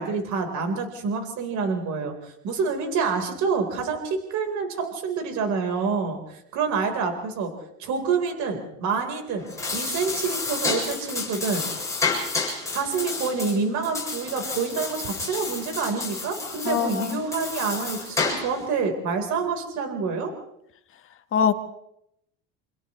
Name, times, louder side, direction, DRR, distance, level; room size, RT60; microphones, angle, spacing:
voice 1, 0.0-7.5 7.8-11.7 12.7-20.3, right 5 dB, 50° right, 4.4 m, -27 dB
sound 1, 9.4-18.7, left 4 dB, 10° left, 7.9 m, -30 dB
voice 2, 16.6-17.2 21.3-21.5, left 7 dB, 35° left, 1.6 m, -23 dB
29.0 x 28.5 x 3.2 m
cardioid pair, 145°, 36 cm